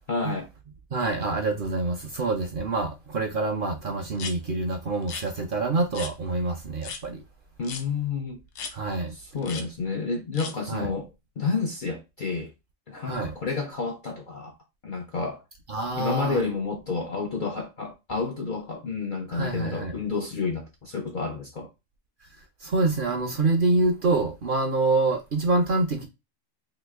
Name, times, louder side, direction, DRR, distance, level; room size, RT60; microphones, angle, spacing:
voice 1, 0.1-0.5 7.6-8.4 9.2-12.5 12.9-14.5 14.8-15.4 15.9-21.7, left 4 dB, 60° left, 0.5 m, -30 dB
voice 2, 0.9-7.2 8.7-9.1 10.7-10.9 13.1-13.3 15.7-16.4 19.3-19.9 22.6-26.1, right 3 dB, 55° right, 0.6 m, -26 dB
sound 1, 4.1-4.3 5.0-5.3 5.9-6.1 6.8-7.0 7.6-7.8 8.5-8.7 9.4-9.6 10.3-10.5, left 5 dB, 75° left, 0.9 m, -36 dB
2.9 x 2.4 x 3.4 m
omnidirectional pair, 1.3 m